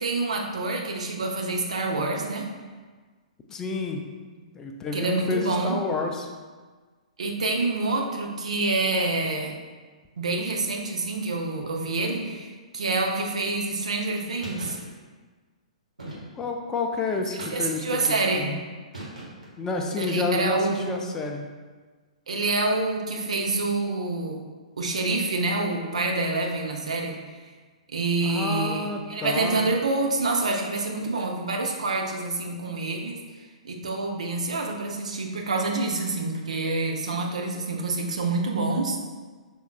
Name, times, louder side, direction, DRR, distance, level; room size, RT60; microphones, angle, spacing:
voice 1, 0.0-2.5 4.9-5.7 7.2-9.5 10.2-14.8 17.5-18.5 20.0-21.0 22.3-24.4 24.8-27.2 27.9-33.2 33.6-39.0, right 3 dB, 65° right, 1 dB, 0.7 m, -27 dB
voice 2, 3.5-4.0 4.5-6.3 16.3-18.6 19.6-21.5 28.2-29.6, left 3 dB, 15° left, 2 dB, 0.4 m, -29 dB
sound 1, 14.4-14.8 16.0-16.5 17.4-18.0 18.9-19.6, right 2 dB, 80° right, 1.4 m, -39 dB
6.2 x 3.5 x 2.3 m, 1.4 s
figure-of-eight pair, 115°, 4 cm